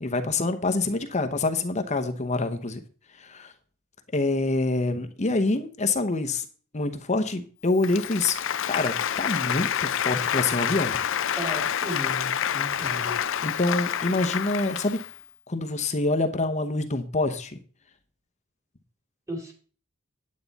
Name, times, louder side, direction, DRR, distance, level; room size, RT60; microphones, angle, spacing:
voice 1, 0.0-2.8 3.2-3.5 4.1-6.4 6.7-8.4 8.7-11.0 13.4-15.0 15.5-17.6, left 2 dB, 35° left, 7 dB, 0.9 m, -26 dB
Applause, 7.8-15.2, left 9 dB, 65° left, 0.5 m, -28 dB
voice 2, 11.4-13.2 19.3-19.5, equal, 15° right, 2 dB, 2.6 m, -35 dB
9.4 x 9.1 x 4.1 m, 0.41 s
head